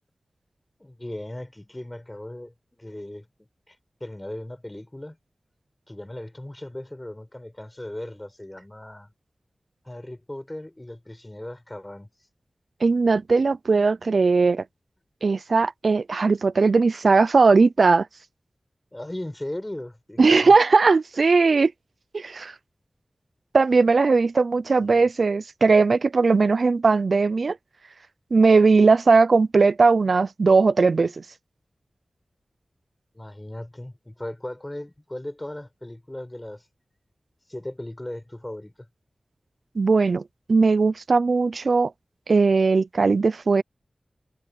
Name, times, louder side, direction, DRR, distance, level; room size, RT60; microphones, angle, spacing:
voice 1, 0.8-3.3 3.7-5.2 5.9-9.1 9.8-12.1 18.9-20.6 24.8-25.1 33.1-36.7 37.5-38.7, left 1 dB, 20° left, 6.6 m, -37 dB
voice 2, 12.8-14.6 15.2-18.1 20.2-21.7 22.1-22.5 23.5-27.6 28.3-31.2 39.8-40.2 40.5-41.9 42.3-43.6, right 4 dB, 70° right, 0.5 m, -19 dB
wide cardioid pair, 60°, 0 cm